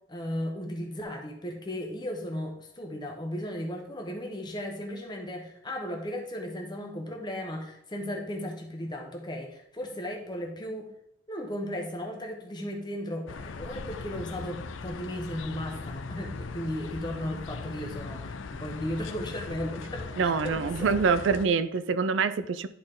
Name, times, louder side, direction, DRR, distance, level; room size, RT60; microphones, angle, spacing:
voice 1, 0.1-10.9 11.3-21.2, equal, 25° left, 2 dB, 1.1 m, -36 dB
sound 1, 13.3-21.5, left 4 dB, 80° left, 0.5 m, -39 dB
voice 2, 20.2-22.7, right 5 dB, 70° right, 14 dB, 0.4 m, -25 dB
11.0 x 4.2 x 3.8 m, 0.74 s
head